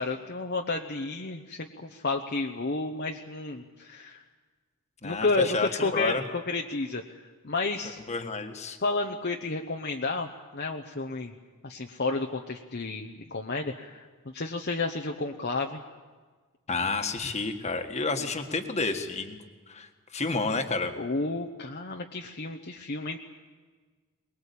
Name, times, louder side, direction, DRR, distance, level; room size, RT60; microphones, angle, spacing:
voice 1, 0.0-4.2 5.0-7.0 7.4-8.0 8.8-11.3 11.6-14.1 14.3-15.8 21.0-23.2, left 3 dB, 45° left, 2 dB, 1.0 m, -31 dB
voice 2, 5.0-6.2 8.1-8.8 16.7-19.4 19.7-20.9, left 3 dB, 30° left, 6 dB, 1.6 m, -30 dB
22.5 x 21.5 x 8.5 m, 1.4 s
head